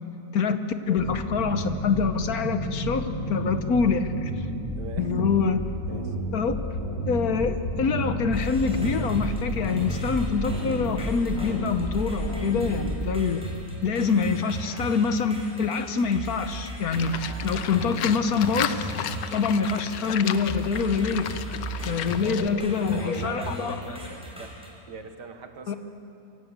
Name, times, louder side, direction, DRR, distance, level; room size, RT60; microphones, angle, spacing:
voice 1, 0.3-4.5 5.0-5.6 6.3-6.6 7.1-13.4 13.8-18.9 19.3-21.3 21.8-24.0 25.7-25.8, left 5 dB, 60° left, 9 dB, 1.4 m, -25 dB
sound 1, 1.0-13.0, right 1 dB, 15° left, 2.4 m, -31 dB
voice 2, 4.8-5.3 5.9-6.2 22.2-24.6 24.9-25.8, right 5 dB, 75° right, 7 dB, 2.0 m, -40 dB
sound 2, 8.3-24.7, right 1 dB, 5° right, 4.5 m, -37 dB
Livestock farm animals working animals, 16.9-22.5, left 10 dB, 85° left, 1.4 m, -34 dB
25.0 x 17.0 x 8.2 m, 2.9 s
omnidirectional pair, 1.9 m